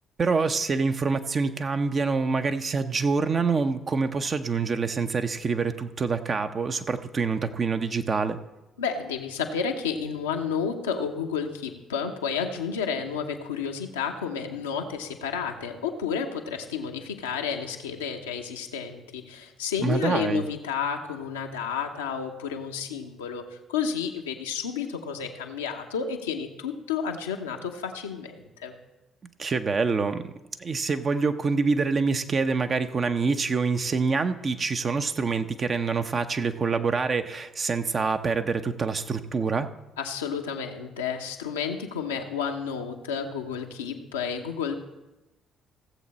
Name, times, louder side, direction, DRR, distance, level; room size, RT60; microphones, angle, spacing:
voice 1, 0.2-8.4 19.8-20.4 29.4-30.3 30.6-39.7, right 4 dB, 40° right, 8 dB, 0.8 m, -26 dB
voice 2, 8.8-28.7 40.0-44.8, left 6 dB, 90° left, 2 dB, 0.8 m, -31 dB
16.0 x 7.4 x 4.2 m, 1.0 s
hypercardioid pair, 50°, 0 cm